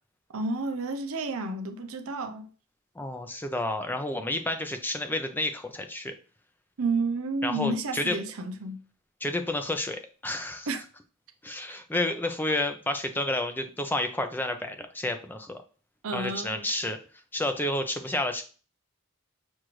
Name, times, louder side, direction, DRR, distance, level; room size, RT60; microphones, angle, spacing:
voice 1, 0.3-2.5 6.8-8.8 10.7-10.8 16.0-16.7, right 3 dB, 75° right, 0.6 m, -31 dB
voice 2, 3.0-6.1 7.4-8.2 9.2-10.7 11.4-15.6 16.1-17.0 17.3-18.4, left 1 dB, 10° left, 0.4 m, -30 dB
6.3 x 2.5 x 3.0 m
head